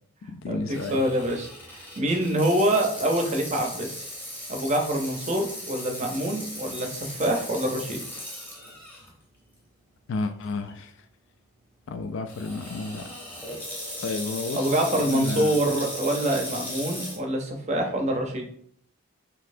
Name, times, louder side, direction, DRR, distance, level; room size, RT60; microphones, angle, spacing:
voice 1, 0.2-1.1 10.1-11.1 11.9-13.1 14.0-15.6, left 3 dB, 60° left, 9 dB, 0.3 m, -32 dB
Water tap faucet / Sink (filling or washing), 0.7-9.1 9.6-9.7 10.4-10.7 12.3-17.2, left 1 dB, 10° left, 0.8 m, -37 dB
voice 2, 0.9-4.1 4.5-8.0 14.5-18.5, right 1 dB, 30° right, 2 dB, 0.6 m, -25 dB
4.0 x 2.7 x 2.6 m, 0.63 s
head